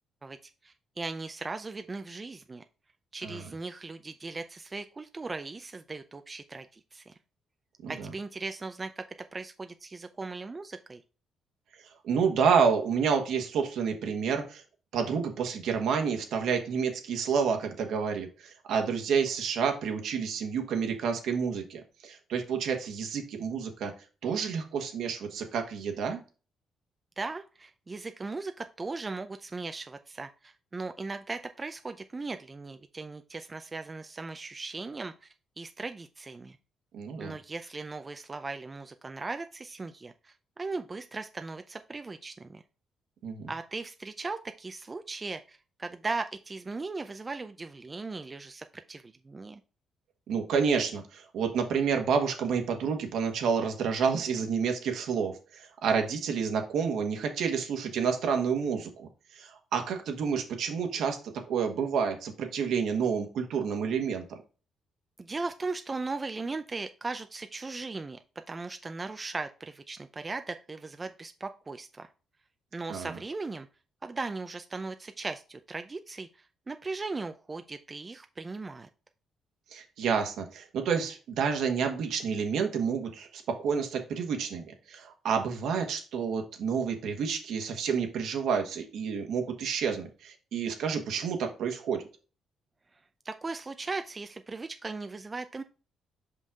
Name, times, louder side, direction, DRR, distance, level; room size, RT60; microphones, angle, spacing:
voice 1, 0.6-2.6 3.1-7.1 7.9-9.0 9.3-11.0 27.2-36.6 37.2-42.6 43.5-49.6 65.2-68.2 68.5-72.1 72.7-73.7 74.0-76.3 76.7-78.9 93.2-95.6, right 3 dB, 25° right, 8 dB, 0.5 m, -38 dB
voice 2, 12.0-14.6 14.9-23.9 24.2-26.2 36.9-37.3 43.2-43.5 50.3-59.1 59.3-61.2 61.5-64.4 72.9-73.1 79.7-92.0, right 6 dB, 75° right, 4 dB, 1.5 m, -29 dB
5.5 x 5.3 x 3.7 m, 0.34 s
cardioid pair, 90°, 0 cm